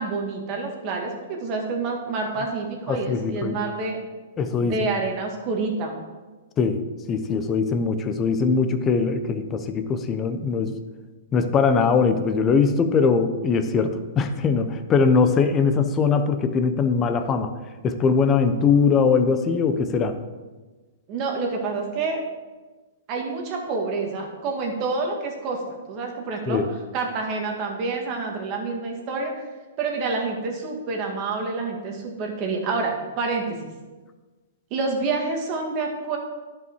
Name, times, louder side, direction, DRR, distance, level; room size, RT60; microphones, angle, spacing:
voice 1, 0.0-4.0 4.6-6.0 21.1-22.2 23.1-26.6 26.9-29.5 29.8-33.7 34.7-36.2, right 3 dB, 35° right, 1 dB, 1.8 m, -28 dB
voice 2, 2.9-3.6 4.4-4.7 6.6-10.8 11.3-17.5 17.8-20.2 26.5-26.7, left 5 dB, 20° left, 9 dB, 0.6 m, -21 dB
11.0 x 5.5 x 4.6 m, 1.3 s
hypercardioid pair, 145°, 0 cm